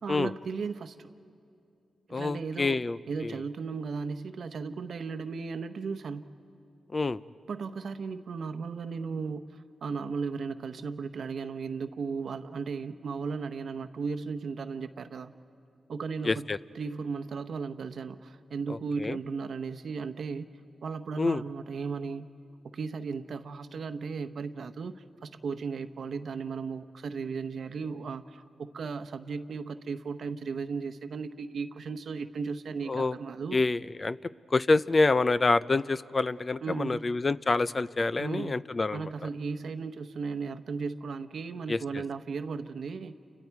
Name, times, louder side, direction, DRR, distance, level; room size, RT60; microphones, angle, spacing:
voice 1, 0.0-1.1 2.1-6.3 7.5-15.3 15.9-16.5 16.7-20.5 20.8-22.3 22.6-33.6 36.6-37.1 38.2-38.6 38.9-43.2, right 5 dB, 70° right, 10 dB, 0.9 m, -36 dB
voice 2, 2.1-3.4 6.9-7.2 16.2-16.6 18.7-19.2 21.2-21.4 32.9-33.2 33.5-39.1 41.7-41.8, left 3 dB, 40° left, 15 dB, 0.5 m, -27 dB
29.5 x 29.0 x 4.7 m, 2.5 s
cardioid pair, 60°, 0 cm